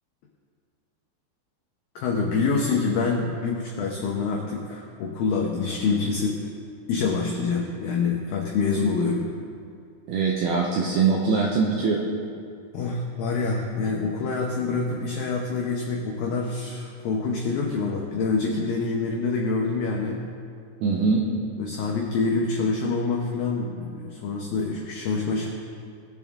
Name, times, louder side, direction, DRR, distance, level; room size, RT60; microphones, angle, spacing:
voice 1, 2.0-6.4 6.9-9.2 12.7-20.2 21.6-25.5, left 4 dB, 85° left, 0 dB, 2.0 m, -26 dB
voice 2, 10.1-12.0 20.8-21.2, right 5 dB, 80° right, -2 dB, 2.2 m, -22 dB
21.0 x 7.2 x 3.6 m, 2.4 s
omnidirectional pair, 5.5 m